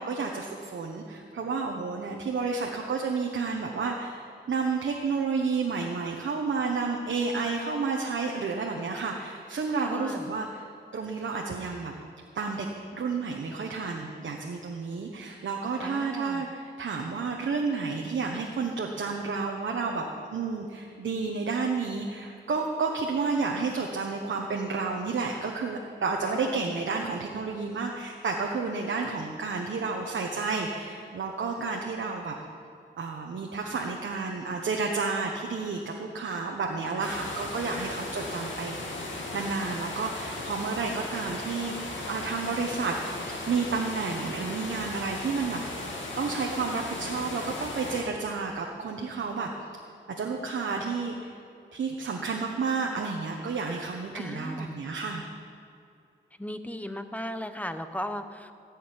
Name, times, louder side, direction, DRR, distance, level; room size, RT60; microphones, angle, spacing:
voice 1, 0.0-10.6 10.9-11.9 12.3-32.3 33.0-38.9 39.3-49.5 50.2-51.3 51.7-55.2, right 4 dB, 85° right, 1 dB, 1.1 m, -31 dB
voice 2, 9.8-10.3 15.8-16.4 26.3-26.7 54.1-54.8 56.4-58.5, left 1 dB, 10° left, 8 dB, 0.9 m, -37 dB
sound 1, 37.0-48.0, left 2 dB, 90° left, 2.6 m, -36 dB
15.0 x 6.5 x 9.7 m, 2.5 s
cardioid pair, 70°, 19 cm